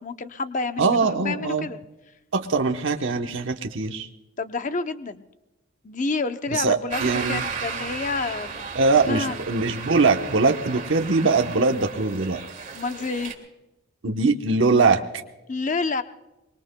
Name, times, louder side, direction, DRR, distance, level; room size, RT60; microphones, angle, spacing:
voice 1, 0.0-1.8 4.4-5.2 5.8-8.7 9.0-9.4 12.7-13.3 15.5-16.0, left 3 dB, 40° left, 10 dB, 0.6 m, -29 dB
voice 2, 0.8-1.7 2.3-4.1 6.5-7.4 8.7-12.4 14.0-15.0, right 4 dB, 65° right, 5 dB, 1.0 m, -22 dB
sound 1, 6.9-13.3, right 5 dB, 40° right, 2.0 m, -34 dB
24.5 x 22.0 x 2.2 m, 1.0 s
head